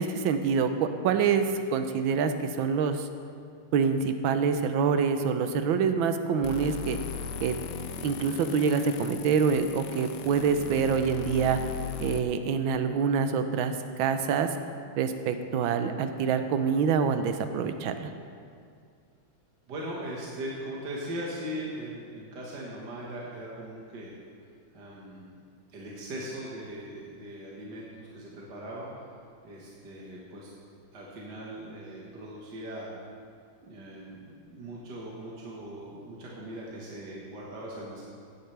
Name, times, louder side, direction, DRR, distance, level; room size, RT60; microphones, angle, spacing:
voice 1, 0.0-3.1 3.7-7.0 7.4-7.6 8.0-11.6 12.0-14.5 15.0-18.1, right 6 dB, 80° right, 8 dB, 1.5 m, -26 dB
sound 1, 6.4-12.2, left 8 dB, 70° left, 1.2 m, -38 dB
voice 2, 19.7-24.1 24.4-25.4 25.7-29.1 29.4-30.5 30.9-32.9 33.6-38.0, right 1 dB, 60° right, -5 dB, 2.1 m, -40 dB
16.0 x 10.0 x 3.3 m, 2.2 s
omnidirectional pair, 2.1 m